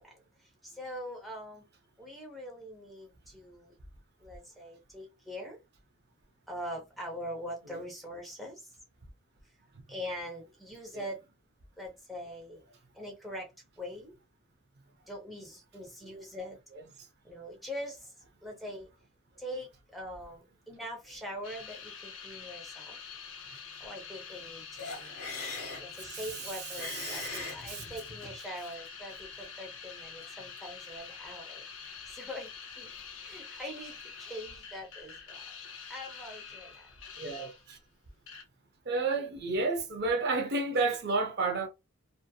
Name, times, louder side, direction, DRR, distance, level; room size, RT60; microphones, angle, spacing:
voice 1, 0.6-1.6 2.0-3.7 4.2-5.6 6.5-8.6 9.9-11.2 11.8-12.6 13.0-13.5 13.8-14.1 15.1-16.6 17.2-18.0 18.4-18.9 19.4-23.0 23.8-25.1 25.8-32.5 32.8-32.9 33.2-33.9 34.2-35.5 35.9-36.9, equal, ahead, 0.6 m, -42 dB
sound 1, 21.4-37.8 38.3-38.4, left 6 dB, 60° left, 0.5 m, -46 dB
sound 2, 24.8-28.4, left 3 dB, 85° left, 1.0 m, -41 dB
voice 2, 26.0-27.8 37.2-37.8 38.9-41.7, right 3 dB, 45° right, 0.5 m, -32 dB
2.7 x 2.5 x 2.2 m
head